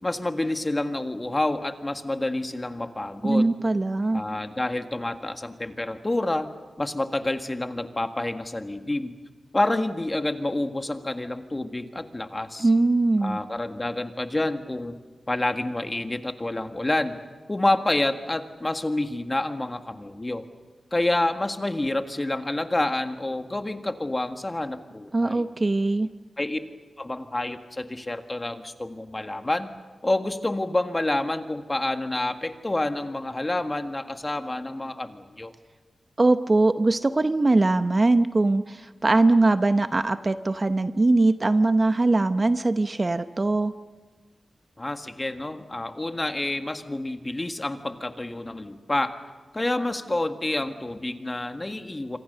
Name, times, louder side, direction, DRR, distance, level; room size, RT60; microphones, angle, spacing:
voice 1, 0.0-3.5 4.1-9.1 9.5-12.7 13.2-15.0 15.3-17.2 17.5-20.4 20.9-25.5 26.4-26.6 27.0-29.7 30.0-35.5 44.8-49.2 49.5-52.2, left 2 dB, 25° left, 7 dB, 1.7 m, -28 dB
voice 2, 3.2-4.2 12.6-13.4 25.1-26.1 36.2-43.7, right 2 dB, 35° right, 11 dB, 0.8 m, -21 dB
26.5 x 25.5 x 6.8 m, 1.4 s
wide cardioid pair, 85°, 0 cm